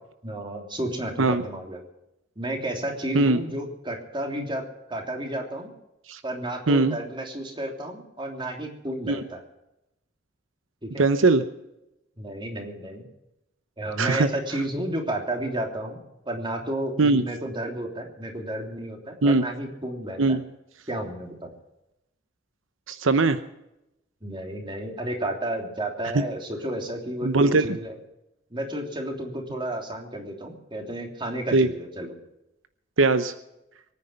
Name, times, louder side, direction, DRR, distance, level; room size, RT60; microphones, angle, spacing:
voice 1, 0.2-1.8 2.4-4.6 4.9-5.7 6.2-9.4 10.8-11.0 12.2-13.0 13.8-20.4 20.9-21.5 24.2-28.0 28.5-32.1, right 1 dB, 25° right, 2 dB, 3.2 m, -32 dB
voice 2, 6.7-7.0 9.1-9.2 11.0-11.4 14.0-14.3 17.0-17.2 19.2-19.4 20.2-20.4 22.9-23.4 26.1-26.2 27.2-27.8 31.5-31.7 33.0-33.3, right 3 dB, 85° right, 11 dB, 0.8 m, -20 dB
23.5 x 9.7 x 5.6 m, 0.89 s
head